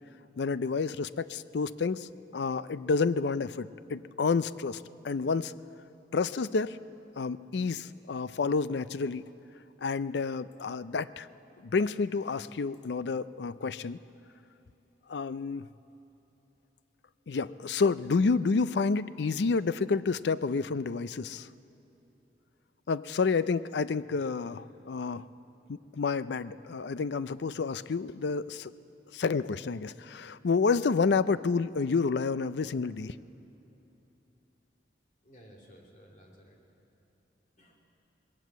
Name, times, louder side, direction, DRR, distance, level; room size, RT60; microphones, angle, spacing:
voice 1, 0.4-5.5 6.1-6.8 7.2-9.3 9.8-11.3 11.6-14.0 15.1-15.7 17.3-21.5 22.9-25.2 25.7-28.7 29.1-33.1, left 4 dB, 75° left, 16 dB, 0.5 m, -29 dB
voice 2, 35.2-36.6 37.6-37.8, equal, 45° left, 0 dB, 2.9 m, -56 dB
20.0 x 17.5 x 7.5 m, 3.0 s
head